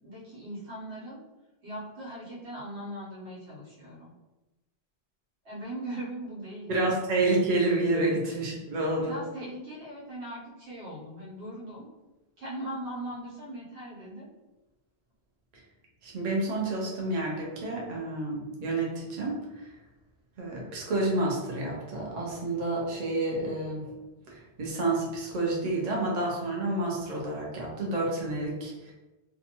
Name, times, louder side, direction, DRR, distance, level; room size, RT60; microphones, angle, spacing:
voice 1, 0.0-1.2 1.6-4.1 5.4-6.9 8.0-8.6 9.0-11.9 12.4-14.3, right 1 dB, 90° right, -7 dB, 1.3 m, -40 dB
voice 2, 6.7-9.1 15.5-15.6 16.0-19.3 20.4-23.9 24.3-28.9, right 2 dB, 45° right, -3 dB, 0.7 m, -29 dB
2.6 x 2.2 x 2.8 m, 1.1 s
omnidirectional pair, 1.1 m